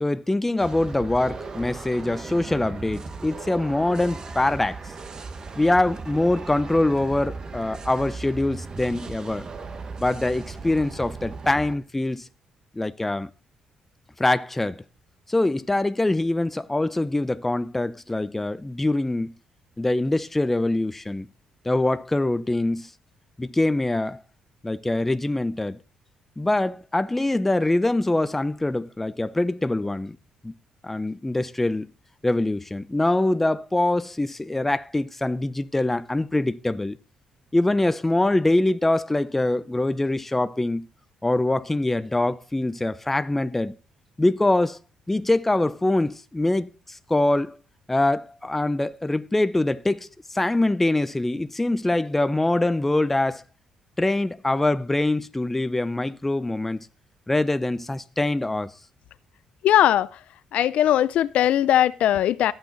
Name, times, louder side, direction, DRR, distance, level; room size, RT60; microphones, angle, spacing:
voice 1, 0.0-4.8 5.6-9.5 10.0-12.3 12.7-13.3 14.2-14.8 15.3-19.3 19.8-21.3 21.6-22.9 23.4-24.2 24.6-25.8 26.4-30.2 30.4-30.5 30.8-31.9 32.2-37.0 37.5-40.9 41.2-43.8 44.2-44.8 45.1-47.6 47.9-53.4 54.0-56.9 57.3-58.7, left 2 dB, 10° left, 0.6 m, -24 dB
sound 1, 0.6-11.8, right 4 dB, 30° right, 1.2 m, -37 dB
voice 2, 59.6-60.2 60.5-62.5, left 11 dB, 75° left, 0.5 m, -19 dB
13.5 x 8.9 x 4.0 m
cardioid pair, 130°, 2 cm